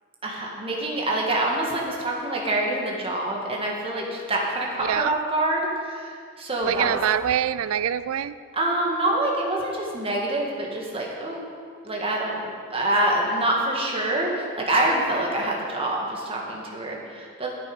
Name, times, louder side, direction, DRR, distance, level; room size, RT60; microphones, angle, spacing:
voice 1, 0.2-7.0 8.5-11.4 11.8-17.5, right 1 dB, 30° right, -2 dB, 1.7 m, -26 dB
voice 2, 4.8-5.2 6.6-8.3, right 9 dB, 85° right, 15 dB, 0.4 m, -25 dB
10.5 x 8.5 x 5.3 m, 2.1 s
head